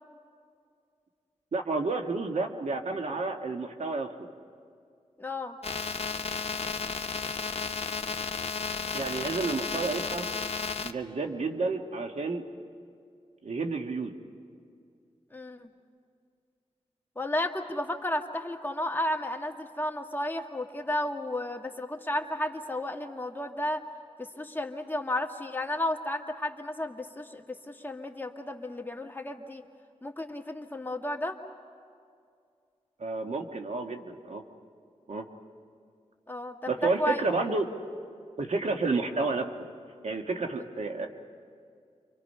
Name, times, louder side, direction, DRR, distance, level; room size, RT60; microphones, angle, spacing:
voice 1, 1.5-4.1 8.9-10.3 10.8-12.4 13.4-14.1 33.0-34.4 35.1-35.2 36.7-37.7 38.4-39.5 40.0-41.1, right 3 dB, 70° right, 4 dB, 1.6 m, -30 dB
voice 2, 5.2-5.6 15.3-15.7 17.2-23.8 24.2-29.6 30.0-31.4 36.3-37.2 40.6-40.7, left 1 dB, 15° left, 3 dB, 1.8 m, -33 dB
sound 1, 5.6-10.9, left 5 dB, 55° left, 1.0 m, -33 dB
29.0 x 25.5 x 5.6 m, 2.3 s
cardioid pair, 60°, 12 cm